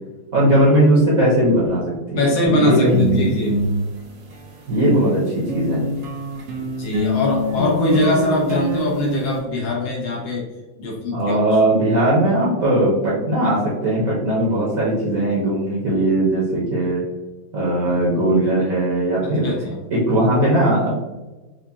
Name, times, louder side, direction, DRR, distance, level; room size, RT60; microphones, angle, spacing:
voice 1, 0.3-3.4 4.7-5.8 11.1-17.0 17.5-19.5 19.9-20.9, right 1 dB, 55° right, -5 dB, 1.0 m, -18 dB
voice 2, 2.2-3.6 6.8-10.5 10.8-11.8 17.9-18.0 19.2-19.8, left 1 dB, 75° left, -3 dB, 1.5 m, -22 dB
sound 1, 2.8-5.1 5.5-9.4, equal, 80° right, 0.7 m, -25 dB
4.7 x 2.5 x 2.7 m, 1.1 s
omnidirectional pair, 2.2 m